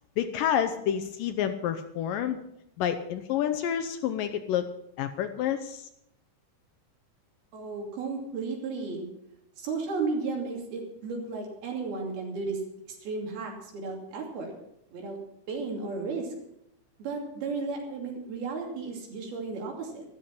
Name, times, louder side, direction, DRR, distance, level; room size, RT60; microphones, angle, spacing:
voice 1, 0.2-2.4 2.8-4.7 5.0-5.8, left 9 dB, 75° left, 9 dB, 2.2 m, -29 dB
voice 2, 7.5-9.0 9.6-12.6 13.0-14.5 14.9-15.2 15.5-16.3 17.0-20.0, right 4 dB, 75° right, 1 dB, 4.6 m, -34 dB
13.0 x 13.0 x 5.9 m, 0.80 s
omnidirectional pair, 4.5 m